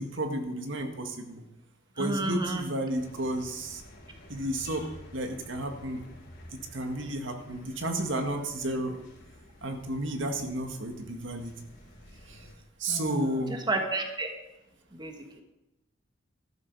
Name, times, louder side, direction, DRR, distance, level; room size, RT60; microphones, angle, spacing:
voice 1, 0.0-1.4 2.0-3.8 4.3-4.8 5.1-6.0 6.7-9.0 9.6-11.6 12.3-12.4 12.8-13.5, right 1 dB, 75° right, 5 dB, 1.9 m, -32 dB
voice 2, 2.0-2.7 12.9-13.2 13.5-14.3 14.9-15.2, right 2 dB, 25° right, 4 dB, 1.4 m, -31 dB
sound 1, 2.9-12.6, left 1 dB, 55° left, 3.9 m, -51 dB
13.5 x 12.0 x 4.8 m, 0.96 s
head